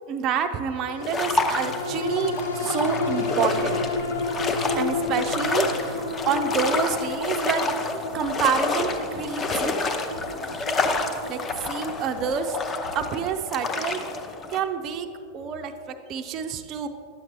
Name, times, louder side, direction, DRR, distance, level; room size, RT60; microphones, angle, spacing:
voice 1, 0.1-3.8 4.8-7.7 8.1-9.9 11.3-11.4 11.6-12.6 12.9-14.0 14.5-15.1 15.3-16.9, right 7 dB, 35° right, 6 dB, 0.4 m, -28 dB
sound 1, 0.7-15.4 15.8-15.9, left 3 dB, 70° left, 0.7 m, -32 dB
sound 2, 1.0-14.6, left 3 dB, 25° left, 0.6 m, -29 dB
sound 3, 8.1-13.5, right 1 dB, 90° left, 1.3 m, -46 dB
9.8 x 7.7 x 3.1 m, 2.3 s
figure-of-eight pair, 90°, 0 cm